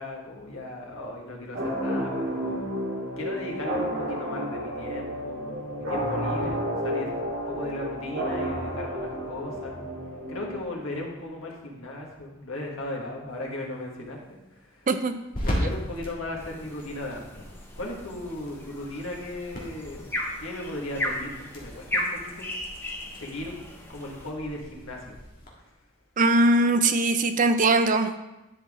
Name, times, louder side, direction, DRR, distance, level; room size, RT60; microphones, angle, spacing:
voice 1, 0.0-2.8 3.2-7.2 7.5-9.8 10.3-14.9 15.4-17.4 17.8-20.1 20.4-22.5 23.2-23.6 23.9-25.2, left 1 dB, 70° left, -1 dB, 1.6 m, -37 dB
sound 1, 1.5-11.0, equal, 65° right, 1.9 m, -31 dB
sound 2, 13.3-25.5, equal, 40° left, 1.7 m, -38 dB
sound 3, 16.4-24.3, left 1 dB, 10° left, 0.9 m, -36 dB
voice 2, 26.2-28.2, right 2 dB, 35° right, 9 dB, 0.5 m, -21 dB
10.0 x 5.7 x 3.6 m, 1.0 s
head